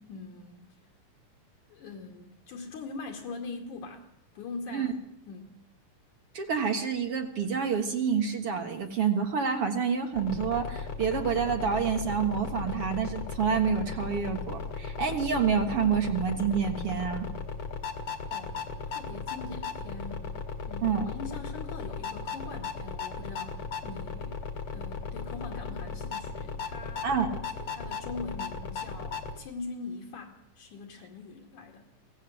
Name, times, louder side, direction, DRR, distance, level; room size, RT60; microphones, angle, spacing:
voice 1, 0.1-0.7 1.7-4.1 4.4-5.0 5.3-5.6 18.3-18.6 18.9-20.3 20.6-24.4 24.7-31.8, left 4 dB, 65° left, 0 dB, 3.6 m, -42 dB
voice 2, 6.3-17.3 20.8-21.1 27.0-27.3, right 6 dB, 50° right, 5 dB, 2.2 m, -28 dB
sound 1, 10.1-29.4, left 5 dB, 45° left, 2.5 m, -37 dB
24.0 x 17.5 x 8.0 m, 0.78 s
omnidirectional pair, 3.9 m